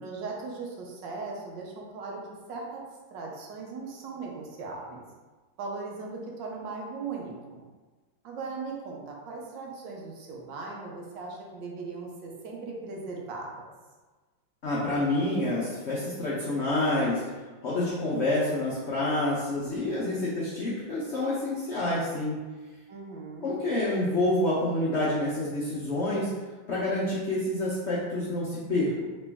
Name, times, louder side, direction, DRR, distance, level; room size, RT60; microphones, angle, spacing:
voice 1, 0.0-2.2 2.5-2.8 3.1-5.0 5.6-7.7 8.2-13.7 22.9-23.6, right 4 dB, 75° right, -1 dB, 1.3 m, -38 dB
voice 2, 14.6-17.2 17.6-22.4 23.4-26.3 26.7-29.1, left 1 dB, 85° left, -7 dB, 0.6 m, -28 dB
3.2 x 3.0 x 3.4 m, 1.3 s
omnidirectional pair, 2.1 m